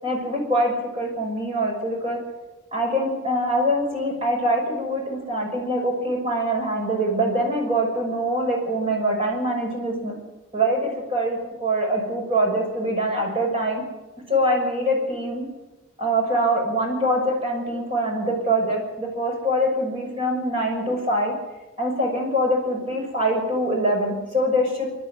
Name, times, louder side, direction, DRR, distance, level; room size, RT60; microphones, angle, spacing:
voice 1, 0.0-2.2 2.7-10.1 10.5-13.8 14.3-15.5 16.0-21.3 21.8-24.9, right 1 dB, 25° right, 0 dB, 6.3 m, -24 dB
24.5 x 12.0 x 9.5 m, 1.1 s
head